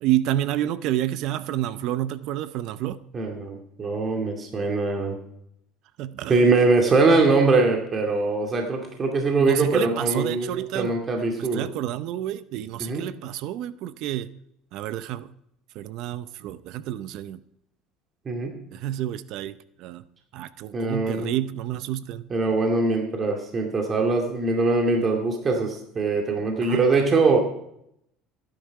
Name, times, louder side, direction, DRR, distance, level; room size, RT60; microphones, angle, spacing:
voice 1, 0.0-3.0 6.0-6.4 9.4-14.3 14.7-15.3 15.7-17.4 18.7-20.0 20.3-22.3 26.6-26.9, right 13 dB, 65° right, 0.6 m, -29 dB
voice 2, 3.1-5.2 6.3-11.7 12.8-13.0 18.3-18.5 20.7-21.3 22.3-27.4, right 3 dB, 35° right, 2.4 m, -22 dB
15.0 x 10.5 x 4.8 m
supercardioid pair, 90°, 0 cm